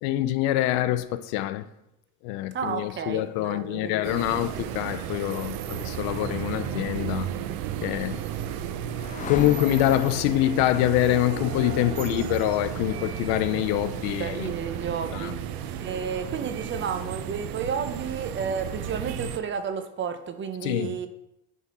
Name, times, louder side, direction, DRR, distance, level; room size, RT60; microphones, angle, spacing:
voice 1, 0.0-1.7 2.2-7.3 7.8-8.2 9.3-14.5 15.1-15.3 20.6-21.0, left 14 dB, 80° left, 0.6 m, -25 dB
voice 2, 2.5-4.1 14.2-15.3 15.8-21.1, right 6 dB, 30° right, 0.7 m, -32 dB
sound 1, 4.0-19.4, right 9 dB, 70° right, 0.7 m, -34 dB
sound 2, 8.2-17.8, left 7 dB, 20° left, 0.4 m, -43 dB
10.0 x 3.7 x 4.2 m
cardioid pair, 130°, 38 cm